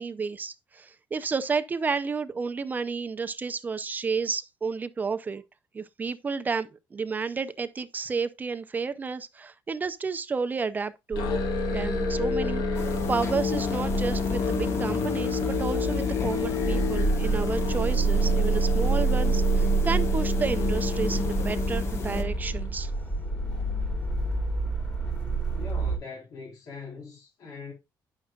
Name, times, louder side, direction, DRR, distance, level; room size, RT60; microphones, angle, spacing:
voice 1, 0.0-5.4 5.7-11.3 11.7-22.9, right 5 dB, 25° right, 0.5 m, -31 dB
sound 1, 11.1-26.0, right 4 dB, 15° left, 3.2 m, -28 dB
Musical instrument, 11.2-22.8, left 6 dB, 85° left, 1.5 m, -30 dB
sound 2, 12.7-22.2, left 4 dB, 35° left, 1.1 m, -38 dB
voice 2, 25.5-27.7, left 4 dB, 55° left, 3.8 m, -42 dB
9.9 x 6.5 x 2.3 m
cardioid pair, 155°, 7 cm